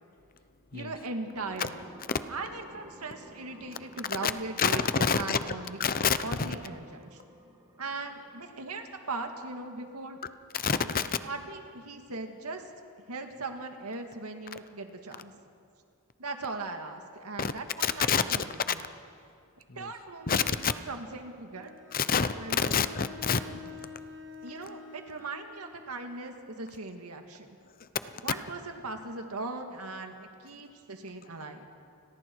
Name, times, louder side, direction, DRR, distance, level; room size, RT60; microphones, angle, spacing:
voice 1, 0.7-1.8 2.3-5.8 6.2-7.2 7.8-10.2 11.2-12.7 13.1-15.3 16.2-18.8 19.7-21.7 22.3-22.7 23.5-23.6 24.4-27.5 28.2-31.6, right 3 dB, 85° right, 5 dB, 2.1 m, -39 dB
sound 1, 1.3-9.3, right 1 dB, 20° right, 2.5 m, -54 dB
voice 2, 4.6-5.4 5.8-6.6 10.5-11.1 17.4-17.5 17.8-18.2 18.7-18.8 19.8-19.9 20.3-20.7 21.9-23.4 27.8-27.9, left 6 dB, 40° left, 12 dB, 0.8 m, -27 dB
Bowed string instrument, 21.5-25.5, left 5 dB, 60° right, 2.3 m, -47 dB
30.0 x 21.5 x 4.7 m, 2.3 s
head